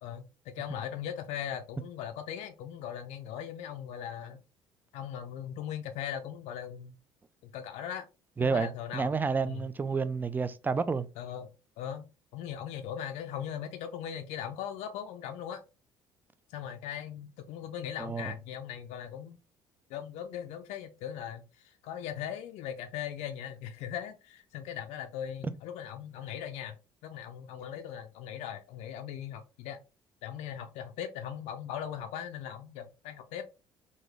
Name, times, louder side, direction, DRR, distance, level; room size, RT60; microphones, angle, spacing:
voice 1, 0.0-4.4 4.9-7.0 7.4-8.1 8.4-9.1 9.5-9.6 11.2-11.5 11.8-12.1 12.3-15.6 16.5-19.4 19.9-26.8 27.0-29.8 30.2-33.5, left 9 dB, 55° left, 0.5 m, -39 dB
voice 2, 8.4-11.1 18.0-18.3, right 5 dB, 15° right, 0.4 m, -30 dB
3.8 x 2.6 x 3.2 m
figure-of-eight pair, 50°, 13 cm